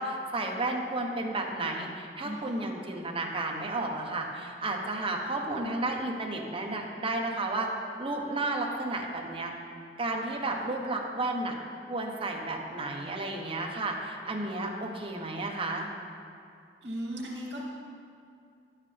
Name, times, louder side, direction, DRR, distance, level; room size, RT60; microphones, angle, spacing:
voice 1, 0.0-7.7 8.0-9.5 10.0-11.5 11.9-15.9, right 2 dB, 30° right, 1 dB, 0.9 m, -32 dB
voice 2, 2.2-2.7 16.8-17.6, equal, 90° right, -5 dB, 1.9 m, -37 dB
11.0 x 7.3 x 3.4 m, 2.4 s
head